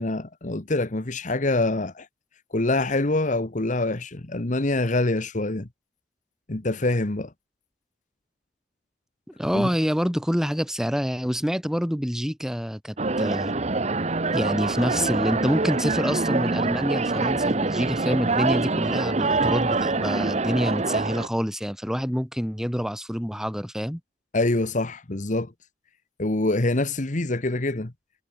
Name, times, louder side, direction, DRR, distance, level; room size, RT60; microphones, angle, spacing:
voice 1, 0.0-2.1 2.5-5.7 6.5-7.3 9.5-9.7 24.3-25.5 26.2-27.9, left 2 dB, 45° left, 1.3 m, -25 dB
voice 2, 9.4-13.5 14.3-24.0, equal, 5° right, 3.2 m, -27 dB
sound 1, 13.0-21.3, right 3 dB, 40° right, 1.2 m, -25 dB
head